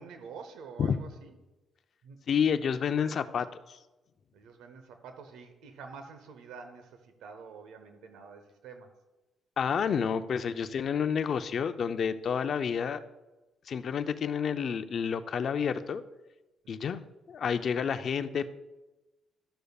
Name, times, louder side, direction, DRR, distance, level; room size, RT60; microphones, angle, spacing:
voice 1, 0.0-1.4 2.0-2.2 4.3-9.0 16.6-17.0, right 5 dB, 90° right, 7 dB, 0.8 m, -48 dB
voice 2, 2.3-3.8 9.6-13.0 13.7-16.0 16.7-17.0 17.3-18.5, left 7 dB, 55° left, 10 dB, 0.5 m, -29 dB
12.5 x 6.6 x 2.4 m, 1.1 s
cardioid pair, 90°, 0 cm